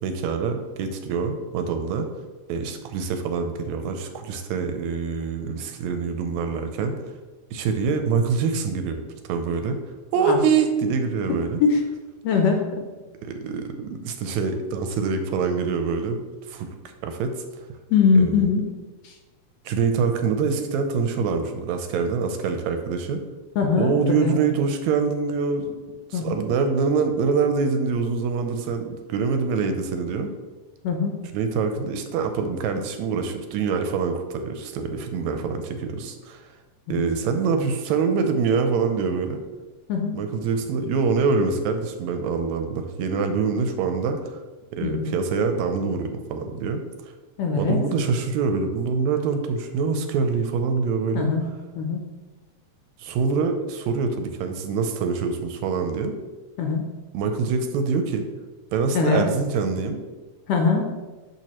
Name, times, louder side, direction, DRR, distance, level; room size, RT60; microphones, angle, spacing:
voice 1, 0.0-2.1 2.5-7.0 7.5-9.8 10.1-11.6 13.2-16.7 17.0-17.4 18.2-18.5 19.7-23.2 23.8-25.8 26.1-30.3 31.3-36.5 36.9-39.4 40.1-44.3 44.7-46.8 47.6-51.3 53.0-56.2 57.1-58.3 58.7-60.0, right 5 dB, 80° right, 6 dB, 1.8 m, -25 dB
voice 2, 12.2-12.6 17.9-18.6 19.0-19.1 23.6-24.4 26.1-26.4 30.8-31.1 36.9-37.0 39.9-40.1 44.8-45.1 47.4-47.8 51.1-51.4 51.7-52.1 56.6-56.8 58.9-59.2 60.5-60.9, left 5 dB, 75° left, 2 dB, 1.6 m, -21 dB
6.1 x 6.1 x 2.9 m, 1.2 s
omnidirectional pair, 3.4 m